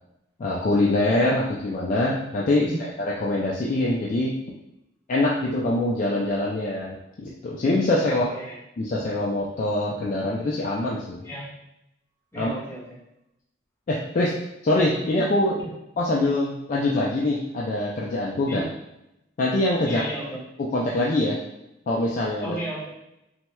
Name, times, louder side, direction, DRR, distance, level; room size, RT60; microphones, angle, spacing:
voice 1, 0.4-4.3 5.1-8.2 8.8-11.2 12.4-12.5 13.9-14.3 14.6-15.6 16.0-18.6 19.4-20.0 20.6-21.4 21.9-22.6, left 2 dB, 40° left, -4 dB, 0.3 m, -24 dB
voice 2, 8.1-8.6 11.2-11.5 12.3-13.0 18.5-18.7 19.8-20.3 22.4-22.9, right 1 dB, 15° left, -9 dB, 1.2 m, -34 dB
4.3 x 2.1 x 2.2 m, 0.88 s
head